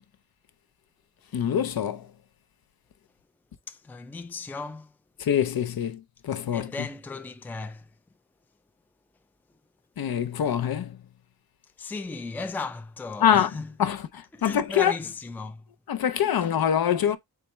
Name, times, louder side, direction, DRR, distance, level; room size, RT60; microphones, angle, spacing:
voice 1, 1.3-2.1 5.2-6.7 10.0-10.9 13.2-13.5 13.8-14.9 15.9-17.2, left 9 dB, 70° left, 0.6 m, -24 dB
voice 2, 3.7-4.9 6.5-7.9 11.8-13.9 14.3-15.7, left 3 dB, 5° left, 0.3 m, -36 dB
4.1 x 3.4 x 3.1 m
wide cardioid pair, 155°, 38 cm